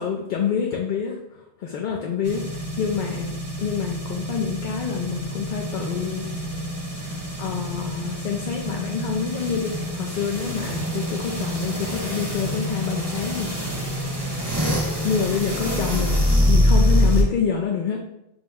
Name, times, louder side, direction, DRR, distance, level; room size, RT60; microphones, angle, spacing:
voice 1, 0.0-3.3 3.6-6.4 7.0-13.5 13.8-13.9 15.0-18.0, left 7 dB, 60° left, 1 dB, 0.6 m, -27 dB
sound 1, 2.2-17.2, equal, 25° right, 0.8 m, -25 dB
5.0 x 2.1 x 3.5 m, 0.84 s
omnidirectional pair, 1.1 m